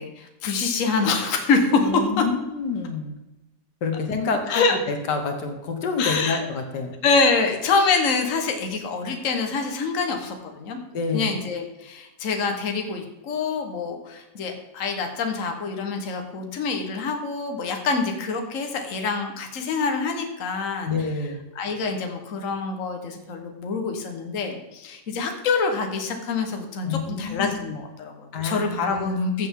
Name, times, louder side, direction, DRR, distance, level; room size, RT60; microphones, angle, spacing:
voice 1, 0.0-1.8 2.2-2.3 4.5-4.8 6.0-6.4 7.0-10.8 11.1-20.9 21.5-29.5, left 4 dB, 50° left, 4 dB, 1.5 m, -25 dB
voice 2, 1.8-3.1 3.8-7.0 10.9-11.3 20.8-21.4 26.9-27.8 28.3-29.1, left 4 dB, 75° left, 5 dB, 1.8 m, -28 dB
14.5 x 7.5 x 3.6 m, 0.98 s
omnidirectional pair, 1.8 m